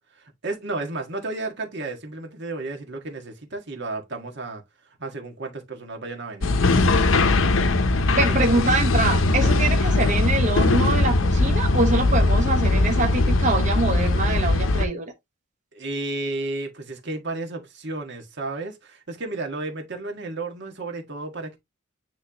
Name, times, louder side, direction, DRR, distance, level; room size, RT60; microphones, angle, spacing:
voice 1, 0.1-4.6 5.0-6.9 8.1-8.2 8.5-8.6 9.5-9.6 15.7-21.6, right 2 dB, 55° right, 1.7 m, -33 dB
sound 1, 6.4-14.8, left 2 dB, 70° left, 0.8 m, -20 dB
voice 2, 8.1-15.1, right 2 dB, 35° right, 1.2 m, -24 dB
9.5 x 3.4 x 2.9 m
head